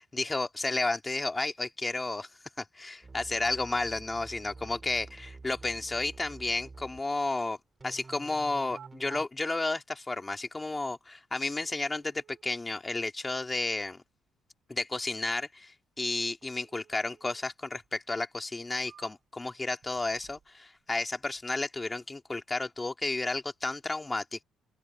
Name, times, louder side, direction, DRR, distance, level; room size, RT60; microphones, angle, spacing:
voice 1, 0.0-2.3 2.6-7.6 7.8-14.0 14.7-24.4, left 2 dB, 15° left, 2.4 m, -32 dB
sound 1, 3.0-7.0 7.8-9.3, right 3 dB, 20° right, 2.5 m, -49 dB
sound 2, 8.1-8.2 8.7-9.6 10.6-10.7 11.4-12.4 16.4-17.4 17.8-17.9 18.5-19.4 19.8-20.5 20.8-21.4, right 9 dB, 55° right, 6.8 m, -55 dB
open air
cardioid pair, 130°, 0 cm